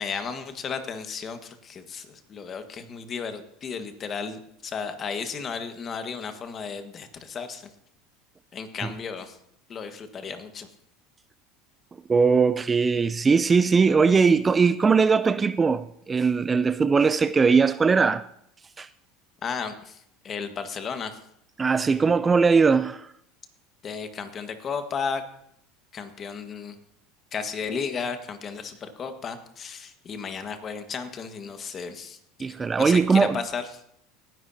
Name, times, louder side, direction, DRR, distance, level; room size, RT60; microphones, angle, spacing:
voice 1, 0.0-7.7 8.5-9.4 9.7-10.7 19.4-21.2 23.8-25.2 25.9-26.7 27.3-33.7, left 6 dB, 35° left, 1.5 m, -34 dB
voice 2, 12.1-18.2 18.8-18.9 21.6-23.1 32.4-33.4, right 5 dB, 20° right, 0.4 m, -20 dB
18.5 x 10.5 x 2.8 m
supercardioid pair, 105°, 0 cm